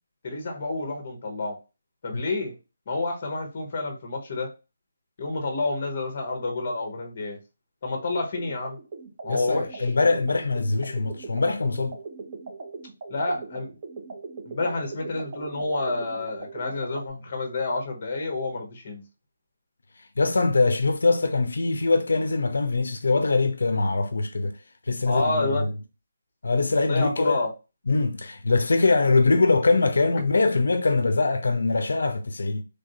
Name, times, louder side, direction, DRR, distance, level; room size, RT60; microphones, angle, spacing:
voice 1, 0.2-1.6 2.0-2.5 2.9-4.5 5.2-7.4 7.8-8.8 9.2-9.9 13.1-13.7 14.5-19.0 25.0-25.7 26.9-27.5, left 2 dB, 30° left, 0.8 m, -29 dB
sound 1, 8.4-17.1, right 4 dB, 30° right, 0.5 m, -40 dB
voice 2, 9.3-12.0 20.2-24.6 24.9-25.7 26.4-27.4 27.9-32.6, left 3 dB, 80° left, 0.4 m, -23 dB
3.3 x 2.5 x 2.6 m
hypercardioid pair, 175°, 0 cm